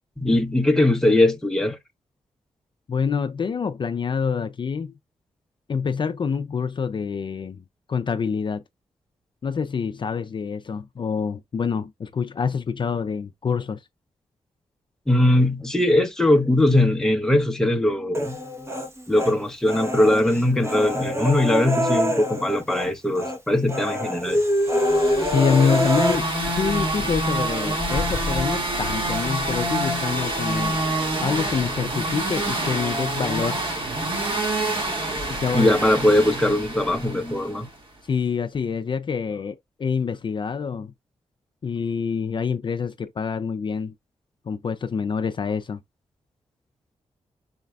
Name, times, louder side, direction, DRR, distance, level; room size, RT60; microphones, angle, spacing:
voice 1, 0.2-1.8 15.1-18.4 19.1-24.4 35.5-37.7, left 1 dB, 5° left, 0.8 m, -20 dB
voice 2, 2.9-4.9 5.7-8.6 9.4-13.8 25.2-30.8 31.2-33.6 35.3-35.7 38.0-40.9 41.6-43.9 44.5-45.8, left 6 dB, 40° left, 0.4 m, -26 dB
Human voice, 18.1-19.3 19.7-22.9 23.2-23.4 23.7-26.2, equal, 25° right, 1.1 m, -25 dB
sound 1, 24.7-37.6, right 1 dB, 45° right, 2.1 m, -27 dB
5.2 x 4.1 x 2.3 m
wide cardioid pair, 115°, 12 cm